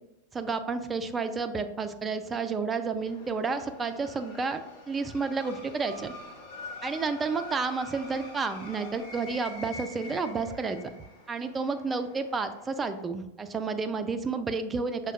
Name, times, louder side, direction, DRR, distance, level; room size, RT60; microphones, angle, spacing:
voice 1, 0.3-4.6 4.9-6.1 6.8-10.8 11.3-15.1, right 4 dB, 15° right, 9 dB, 0.3 m, -31 dB
sound 1, 3.1-13.0, left 2 dB, 50° left, 1.0 m, -46 dB
6.1 x 2.2 x 2.5 m, 0.91 s
figure-of-eight pair, 90°, 0 cm